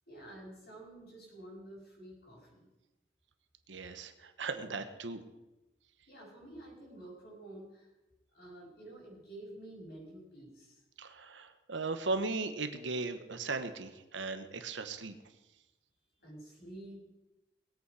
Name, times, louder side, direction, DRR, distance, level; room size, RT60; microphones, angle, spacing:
voice 1, 0.1-2.7 6.1-7.9 8.3-10.8 16.2-17.0, right 1 dB, 55° left, -3 dB, 6.3 m, -50 dB
voice 2, 3.7-5.2 11.0-15.1, right 3 dB, 80° right, 9 dB, 1.1 m, -37 dB
20.0 x 8.5 x 4.8 m, 1.0 s
head